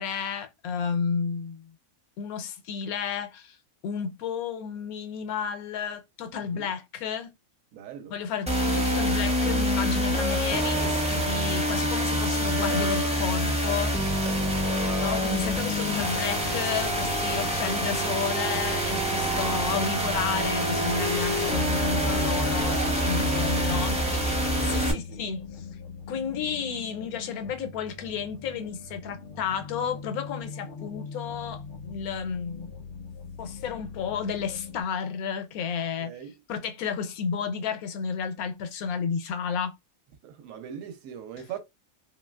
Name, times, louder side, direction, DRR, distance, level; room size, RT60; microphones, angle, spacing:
voice 1, 0.0-1.7 2.2-3.6 3.8-7.3 8.1-13.9 15.0-25.4 26.1-32.7 33.4-36.1 36.5-39.7, left 6 dB, 90° left, 1.1 m, -32 dB
voice 2, 6.4-6.7 7.7-8.1 14.0-14.6 17.2-17.6 22.5-23.2 24.6-25.3 36.0-36.4 40.2-41.6, right 9 dB, 70° right, 1.0 m, -40 dB
sound 1, 8.5-24.9, equal, 10° right, 0.3 m, -26 dB
sound 2, 15.4-23.0, right 5 dB, 45° right, 0.7 m, -45 dB
sound 3, 20.1-34.8, left 5 dB, 60° left, 0.6 m, -42 dB
3.1 x 2.7 x 2.2 m
omnidirectional pair, 1.5 m